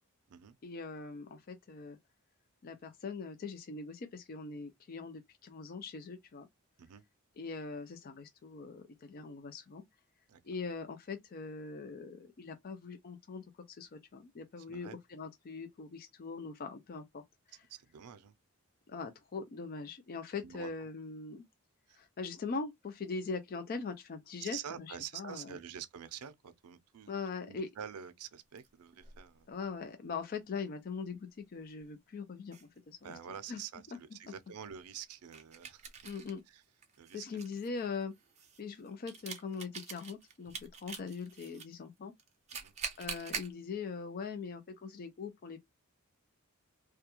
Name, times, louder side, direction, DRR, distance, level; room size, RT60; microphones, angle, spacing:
voice 1, 0.6-2.0 2.6-6.5 7.4-9.8 10.4-17.2 18.9-21.4 21.9-25.6 27.1-27.7 29.5-33.1 33.5-33.6 36.0-36.4 37.1-38.1 38.6-42.1 43.0-45.6, left 4 dB, 40° left, 0.4 m, -41 dB
voice 2, 14.6-15.0 17.7-18.3 20.4-20.9 21.9-22.0 24.4-27.1 27.4-29.5 33.0-35.8 36.5-36.6 37.0-37.4 42.5-42.7, right 8 dB, 90° right, 0.4 m, -47 dB
sound 1, 28.6-29.2 31.7-31.8 32.5-32.7 35.3-36.4 36.8-41.7 42.2-43.5, right 6 dB, 30° right, 0.5 m, -44 dB
2.3 x 2.2 x 2.9 m
head